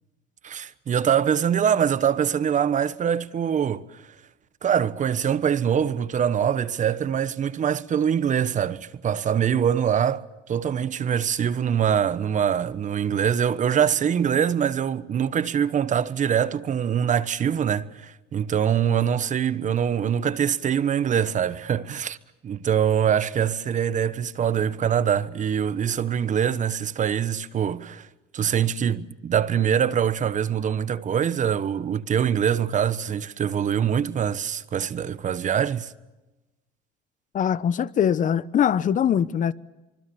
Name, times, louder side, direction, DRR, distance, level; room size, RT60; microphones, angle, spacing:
voice 1, 0.4-3.8 4.6-10.2 10.5-22.2 22.4-28.1 28.3-35.9, right 8 dB, 35° right, 1.2 m, -24 dB
voice 2, 37.3-39.5, left 8 dB, 40° left, 1.0 m, -22 dB
25.5 x 24.0 x 7.1 m
supercardioid pair, 100°, 21 cm